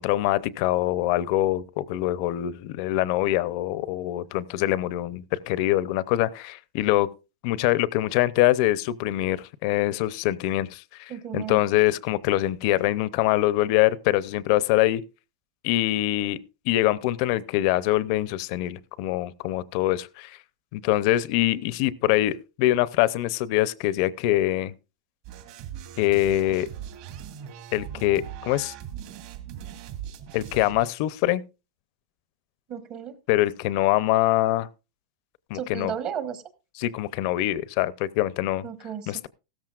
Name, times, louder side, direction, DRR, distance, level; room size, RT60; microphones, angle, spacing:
voice 1, 0.0-7.1 7.4-15.0 15.6-16.4 16.7-20.4 20.7-24.7 26.0-26.7 27.7-28.7 30.3-31.4 33.3-34.7 35.5-35.9 36.8-38.7 39.1-39.3, left 15 dB, 45° left, 0.6 m, -24 dB
voice 2, 11.1-11.6 32.7-33.1 35.5-36.4 38.6-39.3, right 8 dB, 35° right, 1.1 m, -34 dB
sound 1, 25.2-30.8, right 10 dB, 50° right, 2.1 m, -40 dB
16.0 x 13.5 x 2.4 m
supercardioid pair, 155°, 4 cm